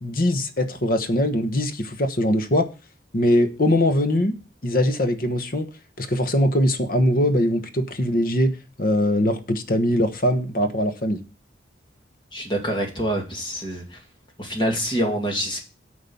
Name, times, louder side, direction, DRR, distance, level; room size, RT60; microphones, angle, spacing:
voice 1, 0.0-2.7 3.1-4.4 4.6-5.7 6.0-11.2, left 1 dB, 50° left, 1.1 m, -21 dB
voice 2, 12.3-14.0 14.4-15.6, equal, 25° left, 2.4 m, -26 dB
9.3 x 5.2 x 7.0 m
head